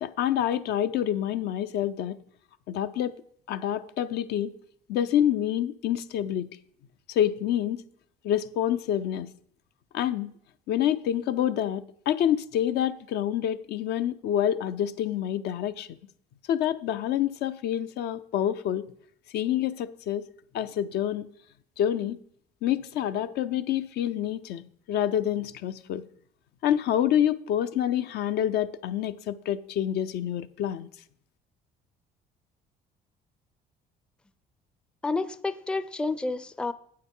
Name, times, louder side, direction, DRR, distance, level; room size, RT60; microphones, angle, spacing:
voice 1, 0.0-2.2 2.7-3.2 3.5-4.5 4.9-6.5 7.1-7.8 8.2-9.3 9.9-10.3 10.7-15.9 16.5-18.8 19.3-20.2 20.5-21.3 21.8-22.2 22.6-24.6 24.9-26.0 26.6-30.9, left 10 dB, 75° left, 0.6 m, -27 dB
voice 2, 35.0-36.7, left 3 dB, 5° left, 0.4 m, -29 dB
8.3 x 6.6 x 5.4 m
cardioid pair, 110°, 17 cm